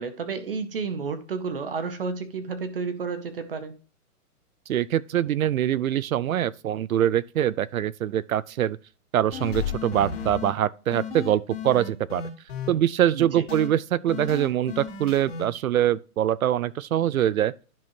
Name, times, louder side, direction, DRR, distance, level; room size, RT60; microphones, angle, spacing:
voice 1, 0.0-3.7 13.1-13.4, right 5 dB, 40° right, 0.9 m, -31 dB
voice 2, 4.7-8.8 9.1-12.2 12.7-17.5, right 11 dB, 65° right, 0.5 m, -24 dB
sound 1, 9.3-10.5 10.9-12.7 13.5-13.7 14.1-15.5, left 6 dB, 40° left, 2.2 m, -33 dB
10.5 x 6.2 x 2.7 m
hypercardioid pair, 175°, 46 cm